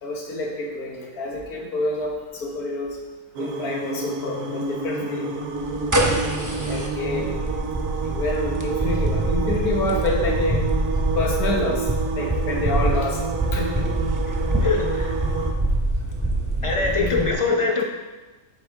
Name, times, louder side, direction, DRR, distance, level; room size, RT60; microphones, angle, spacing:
voice 1, 0.0-3.0 3.4-5.3 6.7-7.5 8.0-10.7 11.1-11.9 12.1-13.2 13.5-13.9 16.8-17.5, left 2 dB, 80° left, -1 dB, 1.7 m, -28 dB
sound 1, 3.4-15.5, right 5 dB, 85° right, 1.3 m, -30 dB
sound 2, 5.6-17.3, right 1 dB, 25° right, 0.4 m, -25 dB
voice 2, 14.3-15.2 16.6-17.8, left 3 dB, 45° left, 0 dB, 0.4 m, -24 dB
8.1 x 5.2 x 3.5 m, 1.2 s
omnidirectional pair, 1.6 m